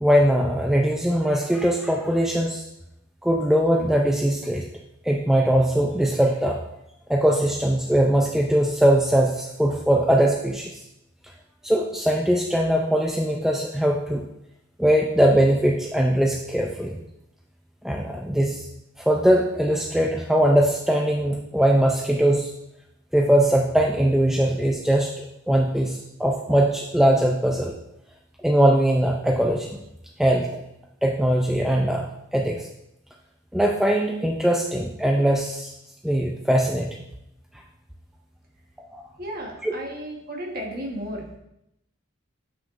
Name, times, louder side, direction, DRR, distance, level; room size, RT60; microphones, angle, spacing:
voice 1, 0.0-2.7 3.2-4.6 5.0-6.7 7.1-10.8 11.6-14.2 14.8-17.0 17.8-18.7 19.0-22.5 23.1-27.7 28.4-29.8 30.2-30.5 31.0-32.7 33.5-35.7 36.0-37.0 38.9-39.0 39.6-39.7, right 1 dB, ahead, 0 dB, 0.3 m, -21 dB
voice 2, 39.2-41.4, equal, 45° right, 0 dB, 1.1 m, -34 dB
7.4 x 6.0 x 2.4 m, 0.83 s
head